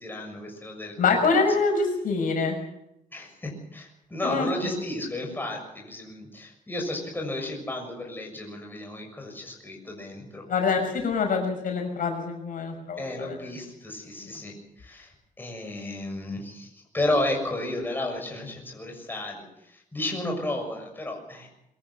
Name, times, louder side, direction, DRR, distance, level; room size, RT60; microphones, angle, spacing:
voice 1, 0.0-1.4 3.1-10.4 13.0-15.1 15.4-21.5, left 1 dB, 15° left, 1 dB, 6.8 m, -33 dB
voice 2, 1.0-2.6 4.2-4.5 10.5-13.3, left 4 dB, 70° left, 3 dB, 6.1 m, -25 dB
23.5 x 14.0 x 8.1 m, 0.81 s
wide cardioid pair, 140°, 15 cm